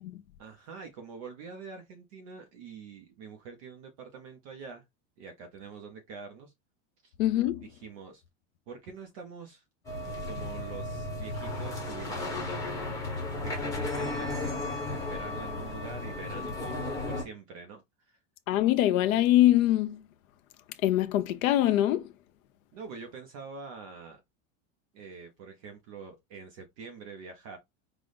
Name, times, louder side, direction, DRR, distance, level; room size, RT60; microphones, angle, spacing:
voice 1, 0.4-4.8 5.2-6.5 7.0-7.1 7.6-8.2 8.7-9.6 10.3-12.5 13.4-18.2 22.7-24.2 24.9-27.6, right 5 dB, 30° right, 0.4 m, -45 dB
voice 2, 7.2-7.7 18.5-20.0 20.8-22.1, left 14 dB, 80° left, 0.7 m, -23 dB
sound 1, 9.8-17.2, left 2 dB, 10° left, 0.8 m, -34 dB
4.9 x 2.0 x 3.9 m
supercardioid pair, 180°, 39 cm